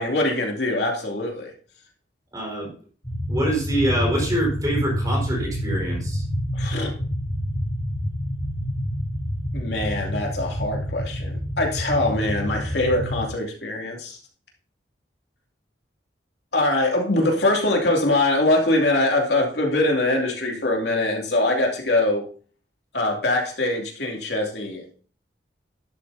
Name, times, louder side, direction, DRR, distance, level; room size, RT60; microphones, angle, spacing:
voice 1, 0.0-1.5 6.5-6.9 9.5-14.2 16.5-22.2 22.9-24.9, left 2 dB, 70° left, 1 dB, 2.7 m, -23 dB
voice 2, 2.3-2.7 3.3-6.2, right 1 dB, 20° right, -2 dB, 4.5 m, -25 dB
sound 1, 3.0-13.2, equal, 25° left, 3.6 m, -28 dB
12.0 x 11.5 x 2.7 m, 0.41 s
head